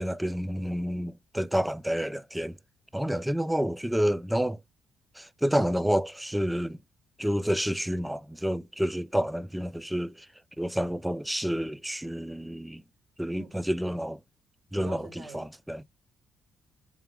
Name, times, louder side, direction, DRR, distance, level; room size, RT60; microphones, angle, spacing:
voice 1, 0.0-2.6 2.9-4.6 5.2-6.8 7.2-10.3 10.6-12.8 13.2-14.2 14.7-15.0 15.3-15.8, equal, 5° right, 0.3 m, -29 dB
voice 2, 13.3-13.7 14.7-15.5, right 4 dB, 55° right, 1.7 m, -44 dB
3.6 x 3.1 x 3.4 m
cardioid pair, 90°, 0 cm